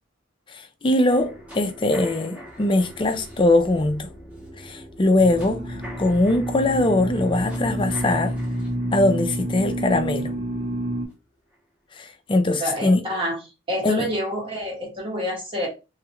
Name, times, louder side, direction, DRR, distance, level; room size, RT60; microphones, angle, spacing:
voice 1, 0.5-4.1 4.6-8.4 8.9-10.3 12.0-13.0 13.8-14.1, left 2 dB, 25° left, 0.4 m, -21 dB
sound 1, 1.1-11.1 11.5-11.6, equal, 5° right, 0.9 m, -43 dB
sound 2, 5.2-11.1, right 1 dB, 60° right, 1.6 m, -29 dB
voice 2, 12.6-13.4 13.7-15.7, equal, 25° right, 1.1 m, -27 dB
3.2 x 2.5 x 2.9 m
head